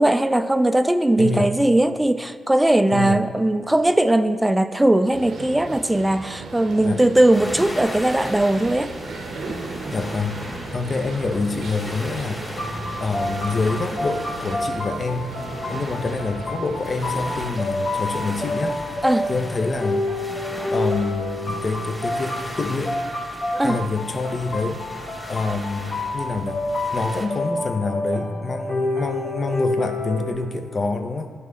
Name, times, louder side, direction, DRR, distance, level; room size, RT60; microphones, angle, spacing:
voice 1, 0.0-8.9 19.0-19.3 23.5-23.8, right 1 dB, 15° right, 10 dB, 0.4 m, -19 dB
voice 2, 1.2-1.5 2.9-3.3 6.8-7.0 9.9-10.4 10.7-12.4 13.0-15.4 15.7-18.8 19.3-20.1 20.7-23.0 23.6-24.8 25.3-26.6 26.9-31.3, left 3 dB, 50° left, 8 dB, 0.6 m, -26 dB
sound 1, 5.1-17.5, right 3 dB, 70° right, 0.7 m, -36 dB
sound 2, 7.3-27.3, left 1 dB, 30° left, 1.5 m, -38 dB
sound 3, 12.6-30.3, left 1 dB, 65° left, 1.4 m, -29 dB
11.0 x 4.1 x 3.2 m, 2.2 s
hypercardioid pair, 40°, 0 cm